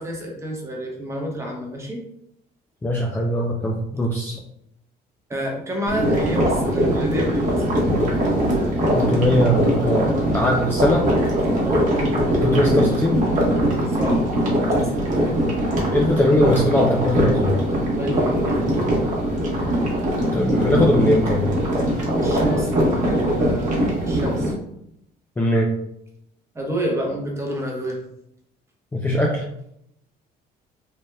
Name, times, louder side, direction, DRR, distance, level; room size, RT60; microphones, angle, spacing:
voice 1, 0.0-2.0 5.3-7.7 11.6-11.9 13.9-14.2 14.7-14.9 17.9-18.6 22.1-24.5 26.5-28.0, equal, 15° right, -1 dB, 0.8 m, -29 dB
voice 2, 2.8-4.4 8.9-11.1 12.4-13.2 15.9-17.6 20.3-21.5 25.4-25.7 28.9-29.4, equal, 15° left, -1 dB, 0.3 m, -20 dB
sound 1, 5.9-24.5, equal, 50° right, 1.1 m, -21 dB
3.3 x 2.7 x 2.2 m, 0.76 s
cardioid pair, 110°, 17 cm